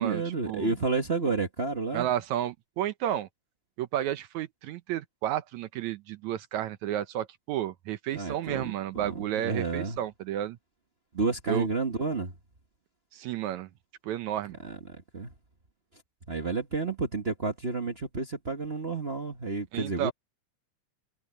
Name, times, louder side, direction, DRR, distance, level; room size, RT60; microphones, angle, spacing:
voice 1, 0.0-2.1 8.1-10.0 11.1-12.3 14.6-15.3 16.3-20.1, right 4 dB, 40° right, 0.8 m, -31 dB
voice 2, 1.9-3.3 3.8-10.6 11.5-11.7 13.1-13.7 14.0-14.6 19.7-20.1, right 12 dB, 70° right, 2.0 m, -32 dB
omnidirectional pair, 3.6 m